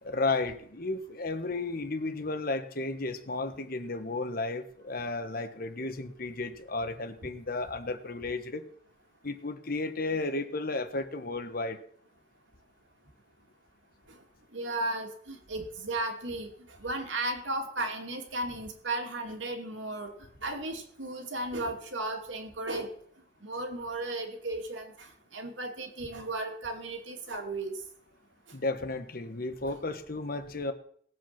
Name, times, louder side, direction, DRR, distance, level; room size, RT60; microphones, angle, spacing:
voice 1, 0.0-8.6 9.2-11.8 28.5-30.7, left 3 dB, 50° left, 9 dB, 1.3 m, -33 dB
voice 2, 14.5-16.5 16.8-20.1 20.4-22.9 23.4-27.8, right 2 dB, 80° right, 3 dB, 2.6 m, -35 dB
19.0 x 7.9 x 5.9 m, 0.62 s
head